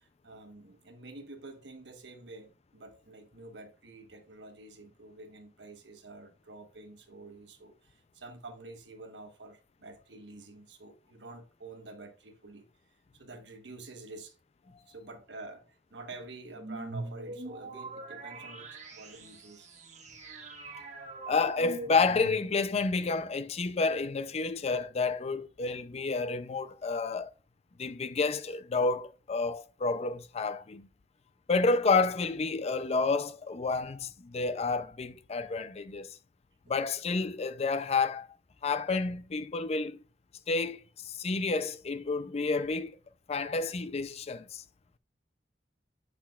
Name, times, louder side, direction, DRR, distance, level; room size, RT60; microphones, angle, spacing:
voice 1, 0.0-12.6 13.1-14.3 14.9-19.7, right 2 dB, 90° right, 1.2 m, -48 dB
sound 1, 16.6-22.9, right 2 dB, 45° right, 1.2 m, -43 dB
voice 2, 21.3-27.3 27.8-30.9 31.5-36.2 36.7-38.3 38.6-40.0 40.5-42.9 43.3-44.6, left 4 dB, 35° left, 0.4 m, -30 dB
8.2 x 5.9 x 2.4 m
head